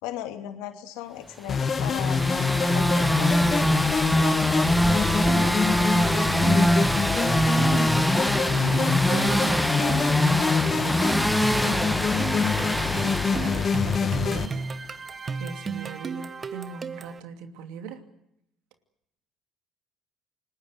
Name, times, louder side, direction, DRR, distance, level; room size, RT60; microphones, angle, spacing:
voice 1, 0.0-2.2 2.6-3.5 4.1-6.6 7.7-7.8, left 11 dB, 80° left, 6 dB, 2.6 m, -38 dB
sound 1, 1.5-14.5, left 6 dB, 45° left, 1.9 m, -25 dB
sound 2, 1.5-14.5, equal, ahead, 1.3 m, -24 dB
sound 3, 4.9-17.2, right 5 dB, 40° right, 1.4 m, -35 dB
voice 2, 7.5-7.9 8.5-13.0 13.3-14.6 15.3-18.0, right 6 dB, 80° right, 7 dB, 2.7 m, -40 dB
29.0 x 20.0 x 8.1 m, 0.79 s
supercardioid pair, 70°, 0 cm